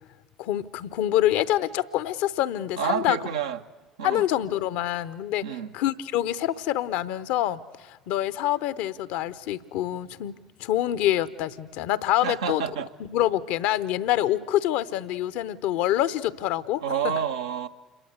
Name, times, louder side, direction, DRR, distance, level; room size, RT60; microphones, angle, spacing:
voice 1, 0.4-3.2 4.0-5.4 5.7-10.3 10.6-12.6 13.0-17.1, left 13 dB, 60° left, 0.8 m, -26 dB
voice 2, 2.8-3.6 4.0-4.3 5.4-5.7 12.2-12.9 16.8-17.7, right 8 dB, 75° right, 0.9 m, -29 dB
27.5 x 22.0 x 8.1 m
figure-of-eight pair, 60°, 3 cm